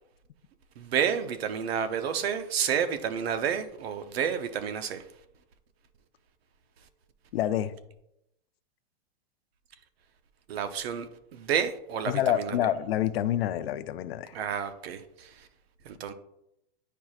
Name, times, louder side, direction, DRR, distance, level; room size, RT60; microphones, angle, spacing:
voice 1, 0.8-5.1 10.5-12.6 14.3-15.5 15.8-16.1, right 8 dB, 85° right, 0.8 m, -30 dB
voice 2, 7.3-7.7 12.1-14.4, left 11 dB, 80° left, 0.6 m, -27 dB
9.9 x 4.6 x 2.4 m
supercardioid pair, 160°, 30 cm